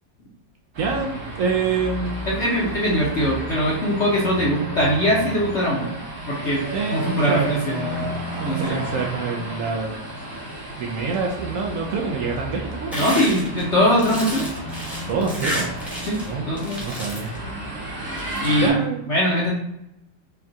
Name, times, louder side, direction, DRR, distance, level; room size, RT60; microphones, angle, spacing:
sound 1, 0.7-18.7, right 1 dB, 45° right, 0.8 m, -32 dB
voice 1, 0.8-2.2 6.7-7.6 8.4-10.0 10.8-13.1 15.1-15.7 16.2-16.5 16.8-17.3 18.6-19.0, right 5 dB, 75° right, 0 dB, 0.7 m, -26 dB
voice 2, 2.3-5.9 6.2-6.6 6.9-8.1 8.4-8.8 12.9-14.5 16.1-16.2 16.5-16.8 18.4-18.7 19.1-19.5, equal, 55° left, -6 dB, 0.8 m, -21 dB
sound 2, 12.9-16.3 16.6-17.4 18.1-18.5, equal, ahead, 0.7 m, -31 dB
5.7 x 2.3 x 2.7 m, 0.82 s
omnidirectional pair, 2.1 m